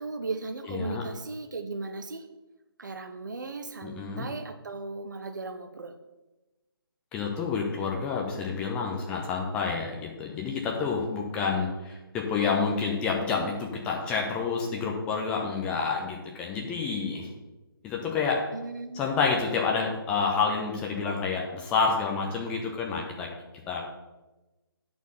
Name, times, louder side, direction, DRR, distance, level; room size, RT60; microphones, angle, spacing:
voice 1, 0.0-2.3 2.8-6.0 18.5-19.3, right 3 dB, 50° right, 8 dB, 0.7 m, -37 dB
voice 2, 0.7-1.0 3.8-4.3 7.1-17.3 17.8-18.4 18.9-23.3 23.7-23.9, left 5 dB, 10° left, -1 dB, 0.6 m, -29 dB
9.3 x 4.4 x 5.5 m, 1.1 s
figure-of-eight pair, 145°, 13 cm